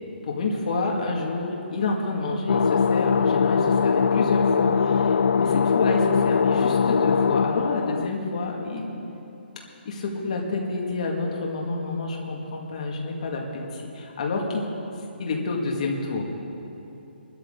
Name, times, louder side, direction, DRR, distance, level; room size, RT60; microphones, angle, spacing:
voice 1, 0.3-5.5 5.7-8.9 9.9-14.6 15.2-16.3, left 3 dB, 40° left, -1 dB, 2.1 m, -28 dB
sound 1, 2.5-8.1, left 6 dB, 80° left, 0.4 m, -21 dB
22.0 x 12.5 x 3.9 m, 3.0 s
hypercardioid pair, 175°, 6 cm